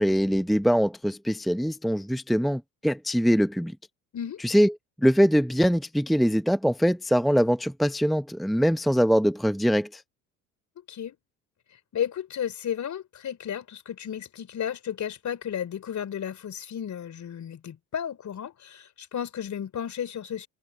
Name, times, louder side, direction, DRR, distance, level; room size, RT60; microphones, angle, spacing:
voice 1, 0.0-3.7 4.4-4.7 5.0-10.0, equal, ahead, 1.1 m, -23 dB
voice 2, 11.9-20.5, left 9 dB, 40° left, 3.7 m, -33 dB
figure-of-eight pair, 60°, 43 cm